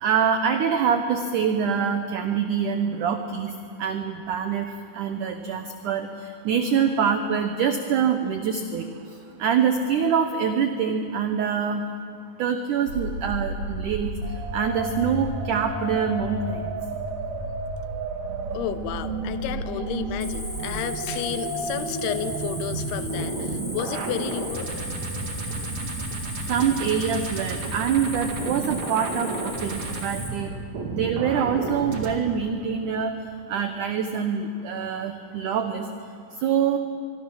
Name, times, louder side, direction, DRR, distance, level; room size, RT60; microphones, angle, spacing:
voice 1, 0.0-3.5 3.8-6.1 6.5-8.8 9.4-11.9 12.4-14.1 14.5-16.7 26.5-30.6 30.9-33.1 33.5-35.9 36.4-36.8, right 7 dB, 85° right, 7 dB, 1.7 m, -25 dB
sound 1, 12.9-32.1, right 2 dB, 50° right, 2.7 m, -32 dB
voice 2, 18.5-24.7, left 11 dB, 80° left, 12 dB, 2.6 m, -32 dB
Cricket, 20.2-30.3, equal, ahead, 3.6 m, -37 dB
24.0 x 24.0 x 6.2 m, 2.3 s
omnidirectional pair, 4.9 m